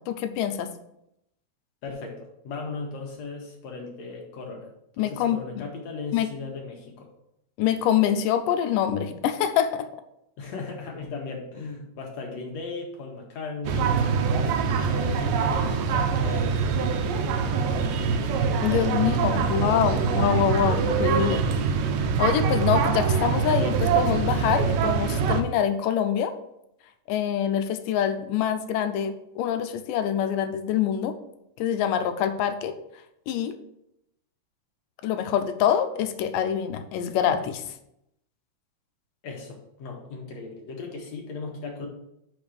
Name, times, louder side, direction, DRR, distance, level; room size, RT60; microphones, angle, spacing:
voice 1, 0.1-0.7 5.0-5.4 6.1-6.3 7.6-9.9 18.6-21.5 22.2-26.3 27.1-31.2 31.6-32.8 33.3-33.6 35.0-37.7, left 9 dB, 85° left, 9 dB, 2.3 m, -25 dB
voice 2, 1.8-4.7 5.0-7.1 10.4-14.1 14.8-16.5 17.0-18.4 18.7-20.2 39.2-41.9, left 4 dB, 60° left, 1 dB, 2.2 m, -37 dB
sound 1, 13.6-25.4, right 5 dB, 85° right, 2.4 m, -24 dB
5.8 x 5.2 x 6.4 m, 0.81 s
omnidirectional pair, 3.8 m